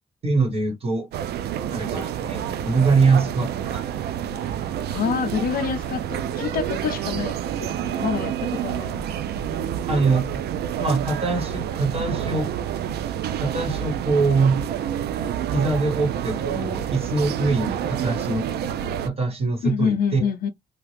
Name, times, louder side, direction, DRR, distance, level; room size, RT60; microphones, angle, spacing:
voice 1, 0.2-1.1 1.7-3.8 9.9-10.4 10.8-12.6 13.4-14.6 15.5-18.5 19.0-20.2, right 4 dB, 35° right, 1.3 m, -23 dB
sound 1, 1.1-19.1, right 10 dB, 75° right, 0.4 m, -28 dB
voice 2, 4.9-7.3 7.6-9.0 19.6-20.5, left 7 dB, 60° left, 0.6 m, -27 dB
2.9 x 2.4 x 3.2 m
cardioid pair, 145°, 17 cm